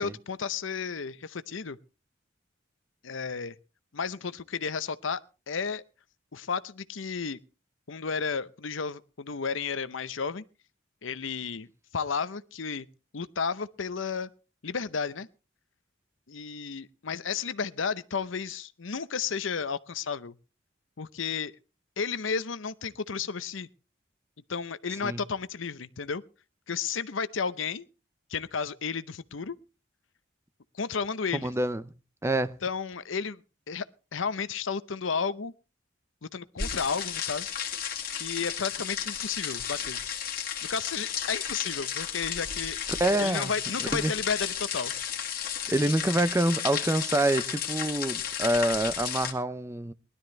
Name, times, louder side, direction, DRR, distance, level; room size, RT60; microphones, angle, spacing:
voice 1, 0.0-1.8 3.0-3.6 3.9-5.2 5.5-5.8 6.3-7.4 7.9-10.4 11.0-11.7 11.9-12.9 13.1-14.3 14.6-15.3 16.3-20.3 21.0-21.6 22.0-23.7 24.5-26.2 26.7-27.8 28.3-29.6 30.7-31.5 32.6-33.4 33.7-33.8 34.1-35.5 36.2-37.5 38.1-40.0 40.6-42.8 43.2-44.9, left 5 dB, 80° left, 0.8 m, -32 dB
voice 2, 31.3-31.8 32.2-32.6 43.0-43.5 43.9-44.1 45.7-49.9, right 1 dB, 15° right, 0.6 m, -26 dB
sound 1, 36.6-49.3, left 8 dB, 50° left, 2.0 m, -33 dB
20.0 x 12.5 x 3.2 m
head